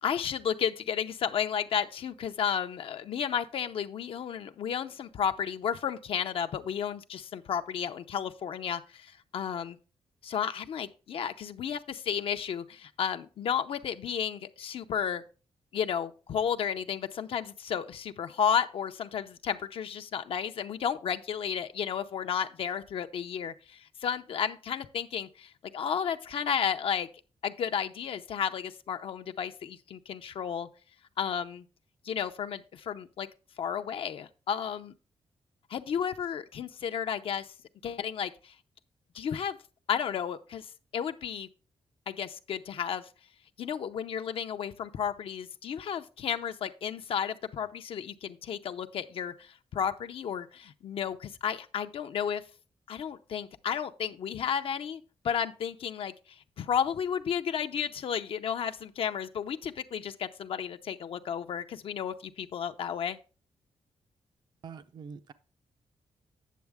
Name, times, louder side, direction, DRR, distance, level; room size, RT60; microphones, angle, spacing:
voice 1, 0.0-9.8 10.2-15.2 15.7-27.1 27.4-30.7 31.2-31.6 32.0-33.3 33.6-34.9 35.7-37.5 37.8-38.5 39.1-39.6 39.9-41.5 42.1-43.1 43.6-52.4 52.9-63.2, left 8 dB, 65° left, 0.6 m, -33 dB
voice 2, 64.6-65.3, right 6 dB, 45° right, 0.5 m, -44 dB
9.3 x 7.1 x 3.5 m
wide cardioid pair, 180°, 10 cm